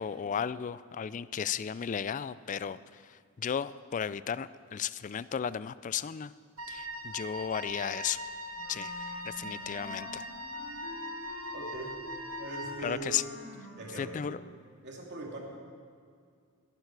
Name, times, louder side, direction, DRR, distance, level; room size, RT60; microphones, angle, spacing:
voice 1, 0.0-2.8 3.4-6.3 6.7-8.2 8.7-10.2 12.8-13.2 14.0-14.4, left 8 dB, 35° left, 16 dB, 0.3 m, -34 dB
Wind instrument woodwind instrument, 6.6-12.9, left 1 dB, 70° right, 1.2 m, -41 dB
Wind instrument woodwind instrument 2, 8.6-14.5, equal, ahead, 4.9 m, -47 dB
voice 2, 11.5-11.9 12.4-13.2 13.8-14.3 14.8-15.4, right 2 dB, 50° right, -1 dB, 2.9 m, -41 dB
21.0 x 11.5 x 4.7 m, 2.2 s
head